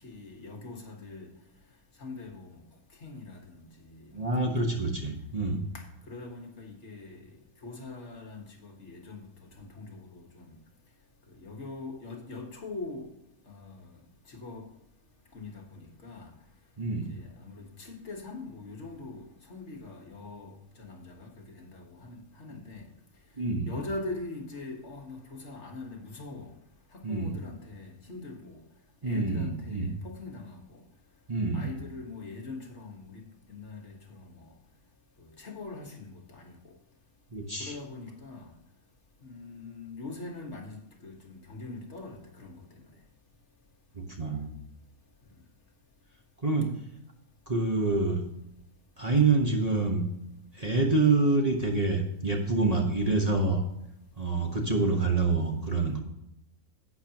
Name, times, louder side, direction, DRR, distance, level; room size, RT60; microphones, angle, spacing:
voice 1, 0.0-1.3 2.0-2.6 3.0-5.0 5.7-7.3 7.6-10.6 11.3-13.1 13.5-14.0 14.3-14.6 15.3-16.3 16.9-22.9 23.7-26.5 26.9-28.6 29.0-30.8 31.5-33.2 33.5-34.5 35.2-36.5 37.6-38.5 39.2-40.8 41.0-42.6, left 3 dB, 55° left, 1.7 m, -42 dB
voice 2, 4.1-5.6 16.8-17.1 23.4-23.7 27.0-27.3 29.0-29.9 31.3-31.7 37.3-37.7 44.0-44.5 46.4-46.7 47.5-48.2 49.0-50.1 50.5-53.6 54.2-56.0, right 3 dB, 30° right, 1.1 m, -27 dB
11.5 x 8.5 x 2.9 m
omnidirectional pair, 1.5 m